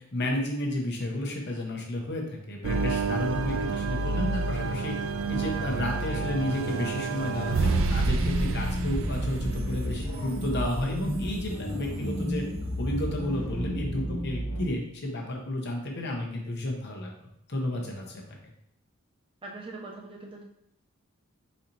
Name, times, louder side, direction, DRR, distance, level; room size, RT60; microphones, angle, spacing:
voice 1, 0.1-4.9 5.3-12.5 12.8-17.1 17.5-18.2, left 1 dB, 50° left, 0 dB, 0.9 m, -32 dB
sound 1, 2.6-12.1, right 3 dB, 60° right, 0.4 m, -29 dB
sound 2, 7.6-14.6, equal, 85° left, 1.0 m, -32 dB
voice 2, 19.4-20.4, right 2 dB, 25° right, -1 dB, 0.7 m, -41 dB
4.2 x 2.9 x 3.9 m, 0.78 s
head